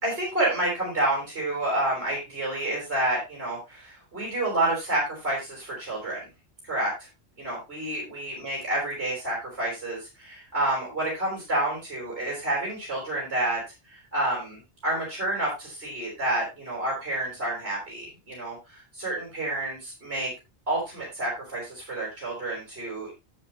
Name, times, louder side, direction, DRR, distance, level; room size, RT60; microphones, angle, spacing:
voice 1, 0.0-6.3 6.7-6.9 7.4-13.6 13.9-20.3 20.7-23.1, right 1 dB, 65° right, -3 dB, 4.9 m, -29 dB
11.5 x 7.9 x 3.0 m, 0.24 s
omnidirectional pair, 1.1 m